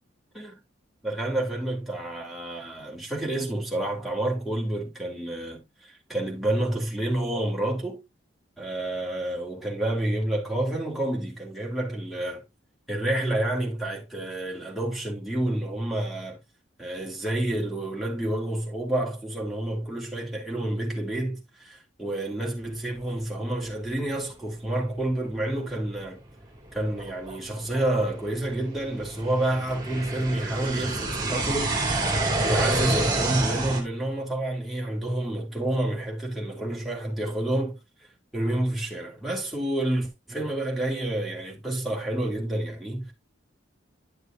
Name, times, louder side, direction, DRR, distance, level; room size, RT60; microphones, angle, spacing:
voice 1, 1.0-8.0 8.6-12.4 12.9-16.4 16.8-26.2 26.7-31.8 32.4-37.8 38.3-43.1, right 1 dB, ahead, 2.7 m, -29 dB
sound 1, 25.0-25.1 25.7-25.8 26.4-33.8, right 2 dB, 20° right, 2.4 m, -28 dB
10.5 x 6.7 x 2.3 m
head